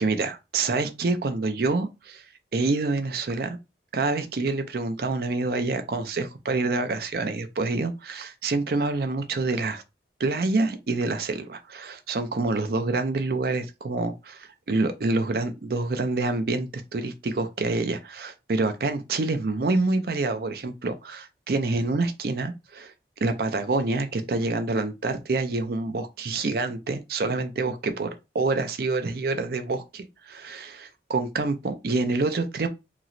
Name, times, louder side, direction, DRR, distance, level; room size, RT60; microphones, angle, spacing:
voice 1, 0.0-2.2 2.5-3.6 3.9-9.8 10.2-22.9 23.2-28.1 28.3-32.7, right 3 dB, 55° right, 0.5 m, -27 dB
3.0 x 2.9 x 2.6 m
head